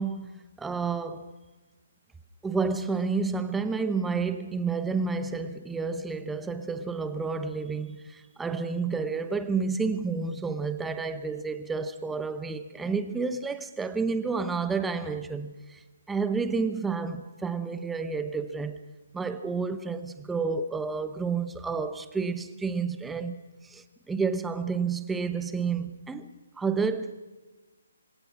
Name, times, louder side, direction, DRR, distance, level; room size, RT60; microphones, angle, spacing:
voice 1, 0.0-1.3 2.4-18.8 19.1-27.2, right 4 dB, 5° right, 0.9 m, -30 dB
27.0 x 21.0 x 6.2 m
hypercardioid pair, 165°, 0 cm